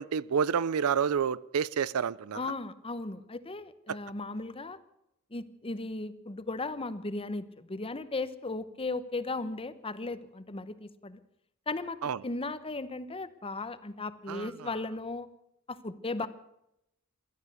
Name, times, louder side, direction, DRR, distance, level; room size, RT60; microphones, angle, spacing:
voice 1, 0.0-2.4 3.9-4.0 12.0-12.2 14.3-14.7 16.2-16.3, right 7 dB, 75° right, 0.5 m, -29 dB
voice 2, 2.3-4.8 5.3-11.2 11.7-12.0 12.2-15.3 15.7-16.3, left 3 dB, 25° left, 0.9 m, -36 dB
17.0 x 12.5 x 6.7 m
head